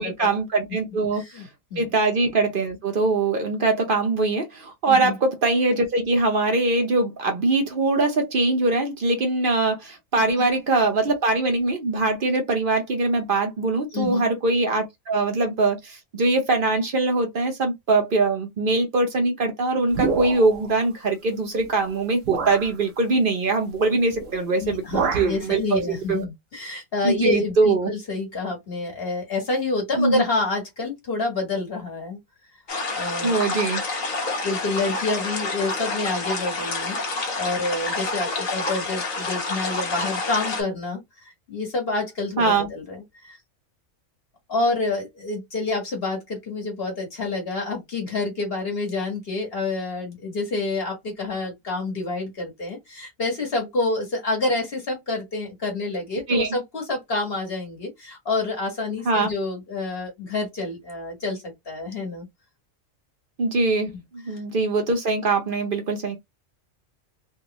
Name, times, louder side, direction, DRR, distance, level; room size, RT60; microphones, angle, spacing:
voice 1, 0.0-1.4 1.8-26.2 27.0-27.9 30.0-30.2 33.2-33.8 42.4-42.7 56.3-56.5 59.0-59.3 63.4-66.2, right 3 dB, 50° right, 0.8 m, -22 dB
voice 2, 1.1-1.4 1.7-1.8 4.9-5.2 10.2-10.5 13.9-14.2 24.6-32.2 32.9-33.4 34.2-37.0 37.4-43.4 44.5-62.3 63.9-64.0, left 3 dB, 50° left, 1.6 m, -28 dB
sound 1, 19.9-20.7 21.6-21.7 22.2-22.7 24.1-24.4 24.6-25.4, right 5 dB, 70° right, 1.1 m, -27 dB
sound 2, 32.7-40.6, left 3 dB, 85° left, 1.5 m, -28 dB
3.5 x 2.4 x 2.9 m
omnidirectional pair, 1.4 m